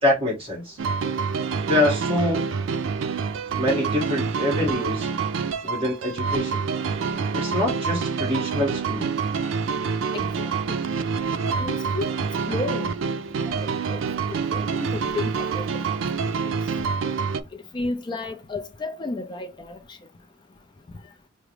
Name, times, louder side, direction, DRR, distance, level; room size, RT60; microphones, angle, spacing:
voice 1, 0.0-0.8 1.7-2.5 3.6-5.1 5.6-6.6 7.3-9.1, left 1 dB, 30° right, 1.6 m, -25 dB
sound 1, 0.8-17.4, right 5 dB, 85° right, 0.4 m, -27 dB
voice 2, 10.1-10.8 11.6-12.1 12.5-12.9 13.4-14.0 14.3-15.7 17.5-20.0, left 3 dB, 25° left, 0.4 m, -32 dB
4.8 x 2.1 x 3.2 m
head